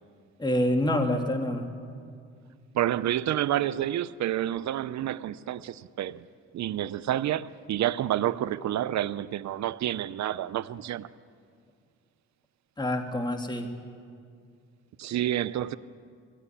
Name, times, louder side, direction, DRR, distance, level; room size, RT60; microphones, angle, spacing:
voice 1, 0.4-1.6 12.8-13.7, left 1 dB, 15° left, 2.1 m, -26 dB
voice 2, 2.7-6.3 6.5-11.1 15.0-15.8, right 12 dB, 65° right, 0.7 m, -29 dB
22.5 x 16.5 x 10.0 m
cardioid pair, 90°, 30 cm